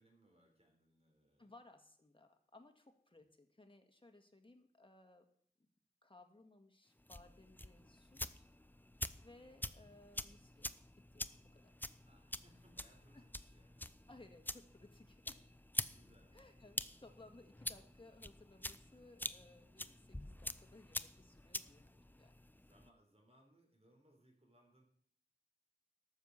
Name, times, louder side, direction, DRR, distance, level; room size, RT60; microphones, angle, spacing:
voice 1, 0.0-1.5 3.1-3.2 9.5-9.8 12.0-14.2 15.8-16.9 21.8-22.2 22.5-24.8, right 1 dB, 40° right, 1 dB, 4.0 m, -71 dB
voice 2, 1.4-5.3 5.6-5.7 6.0-8.5 9.2-11.3 11.5-11.7 13.1-13.3 14.1-15.4 16.3-21.9 22.2-22.3, left 2 dB, 30° left, 5 dB, 1.9 m, -62 dB
sound 1, 7.0-22.9, left 1 dB, 10° left, 0.6 m, -47 dB
13.0 x 6.7 x 7.4 m, 0.62 s
wide cardioid pair, 50°, 16 cm